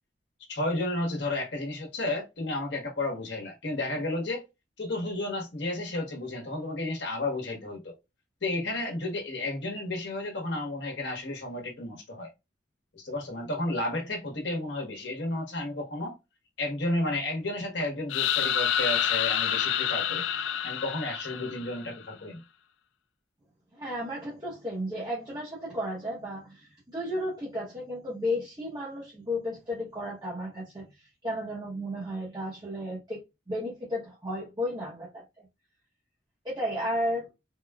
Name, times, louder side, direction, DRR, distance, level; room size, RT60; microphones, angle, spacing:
voice 1, 0.5-4.4 4.8-7.9 8.4-12.3 12.9-16.2 16.6-20.2 20.6-22.4, left 2 dB, 65° left, 1.2 m, -32 dB
sound 1, 18.1-21.9, left 9 dB, 85° left, 0.3 m, -28 dB
voice 2, 23.7-33.2 33.5-35.5 36.4-37.3, equal, 20° right, 0.9 m, -33 dB
3.6 x 2.3 x 2.3 m
head